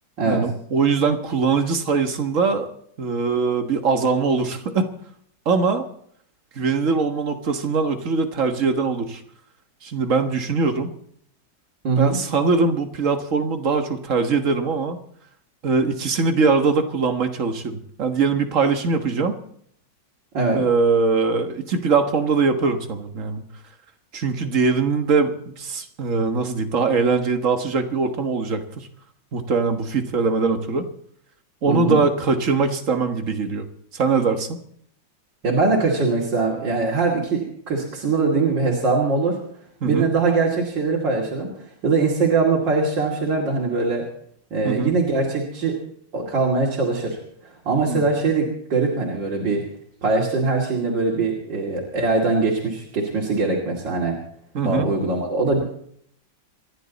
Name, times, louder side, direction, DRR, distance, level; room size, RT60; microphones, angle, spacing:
voice 1, 0.2-2.7 3.0-4.9 5.4-5.8 6.5-9.2 9.8-10.9 12.0-15.0 15.6-19.4 20.5-23.4 24.1-28.9 29.3-30.9 31.6-33.7 33.9-34.6 39.8-40.1 44.6-44.9 47.9-48.0 54.5-54.9, right 4 dB, 45° right, 6 dB, 1.7 m, -22 dB
voice 2, 11.8-12.2 20.3-20.6 31.7-32.0 35.4-39.4 39.8-41.5 41.8-44.1 44.5-45.8 46.1-47.2 47.6-49.6 50.0-54.1 54.6-55.6, right 3 dB, 80° right, -2 dB, 3.3 m, -22 dB
27.0 x 11.0 x 4.1 m, 0.65 s
omnidirectional pair, 2.0 m